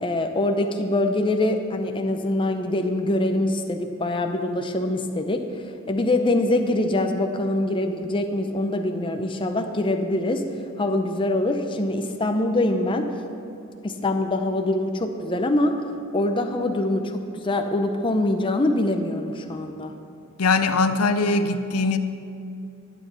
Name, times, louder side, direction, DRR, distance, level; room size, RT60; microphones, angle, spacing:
voice 1, 0.0-5.4 5.9-10.4 10.8-13.1 13.8-15.7 16.1-19.9, left 1 dB, 20° left, 5 dB, 0.6 m, -24 dB
voice 2, 20.4-22.0, left 3 dB, 80° left, 9 dB, 0.6 m, -21 dB
11.5 x 8.1 x 5.6 m, 2.6 s
head